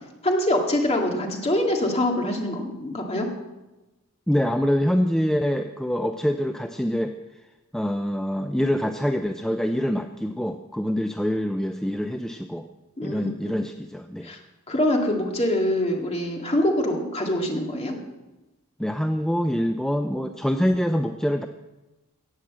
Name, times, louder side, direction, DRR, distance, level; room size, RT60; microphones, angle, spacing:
voice 1, 0.2-3.3 13.0-13.5 14.2-14.4 14.7-17.9, left 1 dB, 30° left, 1 dB, 2.1 m, -24 dB
voice 2, 4.3-7.4 7.7-12.6 13.0-14.3 18.8-21.5, equal, ahead, 6 dB, 0.4 m, -25 dB
18.0 x 6.5 x 7.5 m, 1.1 s
head